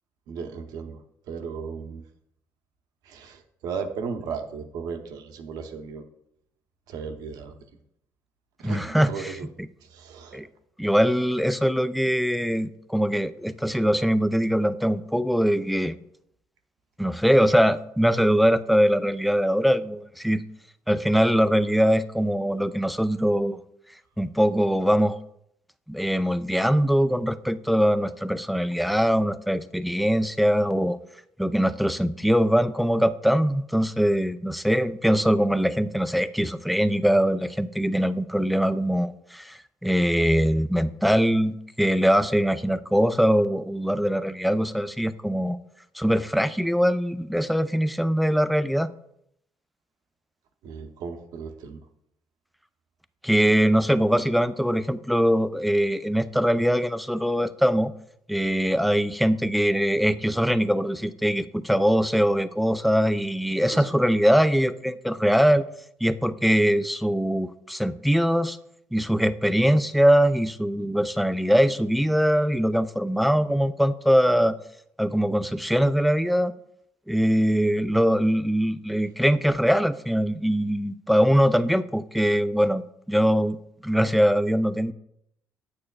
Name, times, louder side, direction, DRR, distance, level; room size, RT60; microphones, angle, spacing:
voice 1, 0.3-1.0 1.3-2.0 3.0-6.0 6.9-7.6 8.6-9.5 9.8-10.4 50.6-51.8 63.7-63.8, right 5 dB, 75° right, 7 dB, 0.8 m, -35 dB
voice 2, 8.6-9.4 10.3-10.5 10.8-16.0 17.0-20.4 20.9-23.6 24.2-25.2 25.9-31.0 31.4-45.6 45.9-48.9 53.2-57.9 58.3-65.7 66.0-68.6 68.9-74.6 75.0-76.5 77.1-83.6 83.8-84.9, equal, ahead, 13 dB, 0.4 m, -22 dB
8.6 x 6.5 x 2.3 m, 0.75 s
supercardioid pair, 65°, 7 cm